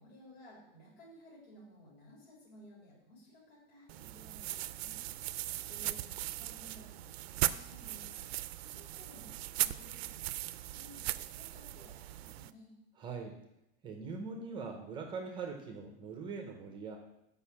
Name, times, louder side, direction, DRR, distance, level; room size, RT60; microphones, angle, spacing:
voice 1, 0.0-5.0 5.7-12.7, left 1 dB, 75° left, -6 dB, 3.7 m, -57 dB
sound 1, 3.9-12.5, right 15 dB, 85° right, 0.5 m, -38 dB
voice 2, 13.0-13.4 13.8-17.0, right 4 dB, 15° right, 4 dB, 0.7 m, -42 dB
6.3 x 5.5 x 7.1 m, 0.85 s
supercardioid pair, 170°, 30 cm